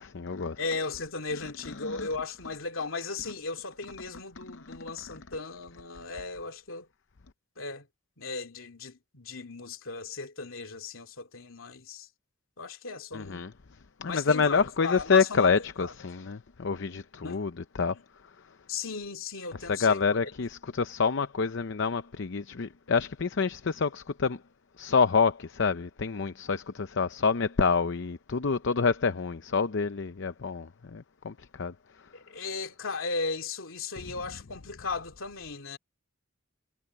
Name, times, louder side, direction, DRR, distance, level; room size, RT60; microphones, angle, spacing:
voice 1, 0.0-0.6 1.8-2.1 13.1-13.5 14.0-17.5 17.8-17.9 19.7-24.4 24.8-31.7, left 5 dB, 65° left, 0.7 m, -27 dB
voice 2, 0.6-6.9 7.6-7.9 8.2-12.1 12.6-13.5 14.1-16.0 17.2-17.4 17.9-18.0 18.7-20.2 32.1-35.8, left 4 dB, 80° left, 2.6 m, -36 dB
head